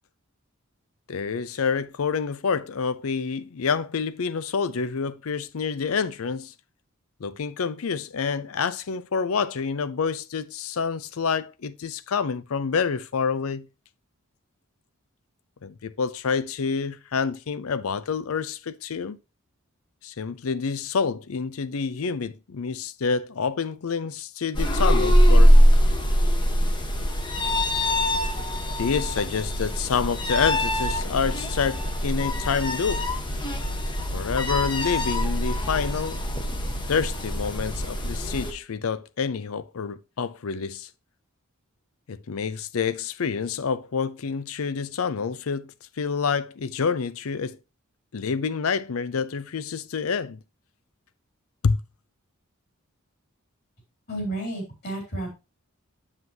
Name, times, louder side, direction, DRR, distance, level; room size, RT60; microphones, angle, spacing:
voice 1, 1.1-6.5 7.2-13.7 15.6-19.2 20.0-25.6 28.8-33.0 34.1-36.2 36.9-40.9 42.1-45.7 46.0-47.6 48.1-50.4 51.6-51.8, left 5 dB, 85° left, 0.5 m, -28 dB
sound 1, 24.5-38.5, equal, 20° left, 1.0 m, -22 dB
voice 2, 54.1-55.3, right 1 dB, 50° left, 3.8 m, -31 dB
7.9 x 7.4 x 2.8 m
head